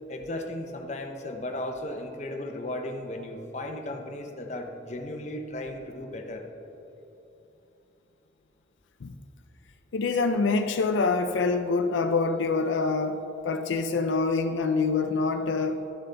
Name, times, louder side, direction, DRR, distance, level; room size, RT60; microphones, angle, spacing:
voice 1, 0.1-6.4, left 1 dB, 35° left, 3 dB, 0.7 m, -35 dB
voice 2, 9.9-15.8, left 4 dB, 75° left, 7 dB, 0.4 m, -26 dB
12.5 x 7.6 x 3.3 m, 3.0 s
head